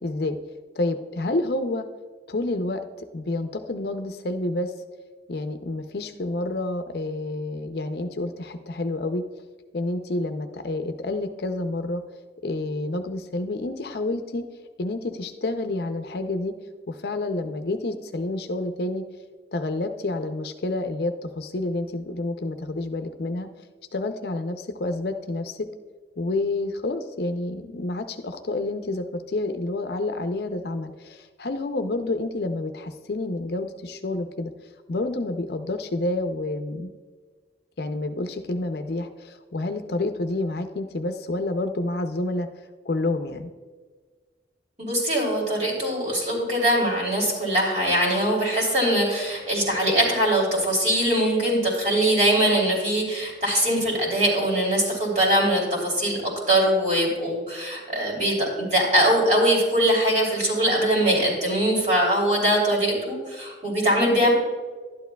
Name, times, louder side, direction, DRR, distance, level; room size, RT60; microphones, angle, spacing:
voice 1, 0.0-0.4 0.8-1.9 2.3-4.7 5.3-9.2 9.7-12.0 12.4-14.5 14.8-16.5 16.9-19.0 19.5-23.5 23.9-25.7 26.2-34.5 34.9-36.9 37.8-42.5 42.8-43.5, left 2 dB, 60° left, 8 dB, 0.5 m, -29 dB
voice 2, 44.8-56.2 56.5-64.3, right 1 dB, 40° right, -3 dB, 3.1 m, -22 dB
12.0 x 10.5 x 2.3 m, 1.4 s
head